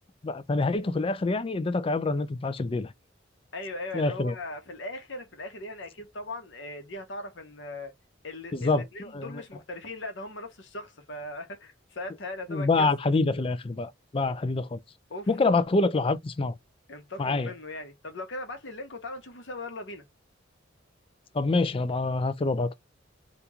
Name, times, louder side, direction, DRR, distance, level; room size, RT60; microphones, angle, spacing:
voice 1, 0.2-2.9 3.9-4.3 8.5-9.4 12.5-14.8 15.3-16.6 17.2-17.5 21.3-22.7, left 3 dB, 30° left, 0.4 m, -26 dB
voice 2, 3.5-7.9 8.2-12.9 15.1-15.3 16.9-20.0, left 2 dB, 70° left, 1.0 m, -39 dB
2.9 x 2.6 x 3.4 m
head